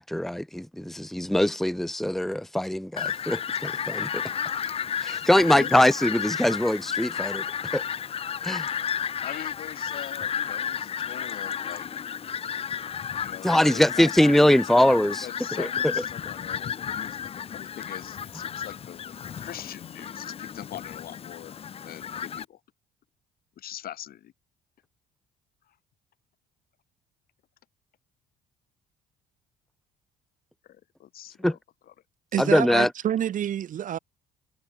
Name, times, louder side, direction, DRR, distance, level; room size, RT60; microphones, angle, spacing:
voice 1, 0.0-4.2 5.0-7.4 7.7-7.8 8.4-8.7 13.4-15.3 15.6-15.7 31.4-31.5 32.4-32.9, left 1 dB, ahead, 1.2 m, -22 dB
Fowl, 3.0-22.4, left 8 dB, 35° left, 0.7 m, -33 dB
voice 2, 5.4-6.0 9.2-11.9 13.2-17.2 17.5-21.6 21.8-22.6 23.6-24.3 30.7-31.6 31.9-32.0, left 12 dB, 60° left, 3.7 m, -42 dB
voice 3, 32.3-34.0, right 10 dB, 50° right, 1.2 m, -27 dB
cardioid pair, 110°, 17 cm